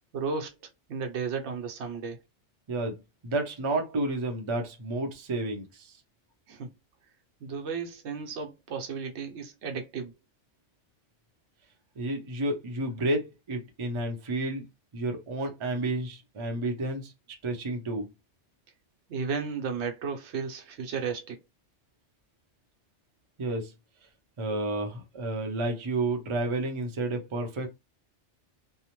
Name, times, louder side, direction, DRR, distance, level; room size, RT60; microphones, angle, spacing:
voice 1, 0.1-0.5 0.9-2.2 6.5-6.7 7.4-10.1 19.1-21.4, right 5 dB, 70° right, 0.9 m, -34 dB
voice 2, 2.7-6.0 12.0-14.6 14.9-17.1 17.4-18.1 23.4-23.7 24.4-27.7, right 2 dB, 40° right, 0.5 m, -31 dB
2.7 x 2.0 x 2.9 m
omnidirectional pair, 1.2 m